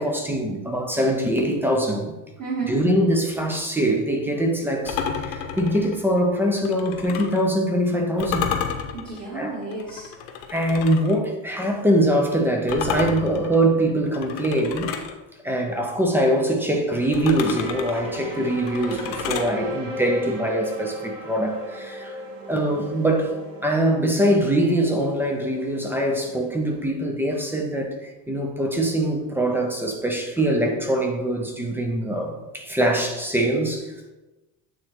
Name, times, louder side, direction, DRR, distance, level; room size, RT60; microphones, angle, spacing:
voice 1, 0.0-2.1 2.6-8.6 9.3-9.6 10.5-15.0 15.4-22.2 22.5-23.4 23.6-33.9, right 1 dB, 5° right, 1 dB, 0.3 m, -23 dB
voice 2, 2.4-2.8 8.9-10.1 24.0-24.1, right 4 dB, 35° right, -7 dB, 1.7 m, -31 dB
sound 1, 4.9-7.4 8.2-11.2 12.7-15.2 17.1-19.5, left 7 dB, 80° left, 1.0 m, -31 dB
sound 2, 17.1-26.8, equal, 80° right, 2.1 m, -37 dB
8.6 x 3.1 x 4.3 m, 1.1 s
cardioid pair, 140°, 50 cm